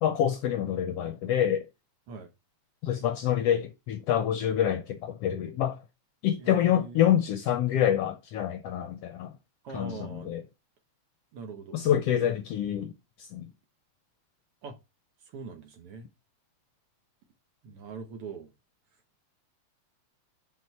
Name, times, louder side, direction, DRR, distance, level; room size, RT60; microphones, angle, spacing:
voice 1, 0.0-1.7 2.8-5.8 6.2-9.3 9.7-10.4 11.7-13.5, left 10 dB, 75° left, 1.4 m, -27 dB
voice 2, 6.4-7.1 9.6-10.4 11.3-11.8 12.2-12.3 14.6-14.8 15.2-16.1 17.6-18.5, right 4 dB, 60° right, 1.8 m, -42 dB
6.1 x 4.6 x 5.5 m
omnidirectional pair, 3.3 m